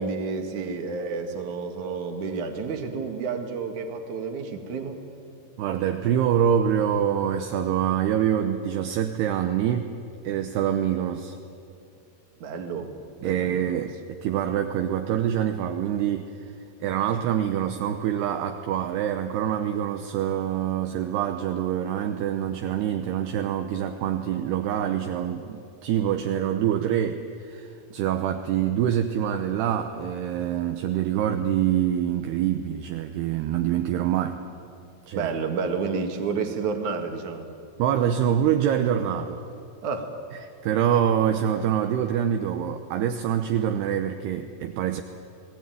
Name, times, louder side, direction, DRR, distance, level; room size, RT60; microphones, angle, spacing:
voice 1, 0.0-5.0 12.4-12.9 13.2-13.9 35.2-37.5 39.8-40.1, right 5 dB, 50° right, 4 dB, 2.8 m, -30 dB
voice 2, 5.6-9.9 10.2-11.4 13.2-13.9 14.2-16.5 16.8-34.4 35.1-35.3 37.8-39.4 40.6-45.0, right 9 dB, 75° right, 6 dB, 2.5 m, -25 dB
30.0 x 19.5 x 9.3 m, 2.5 s
omnidirectional pair, 5.6 m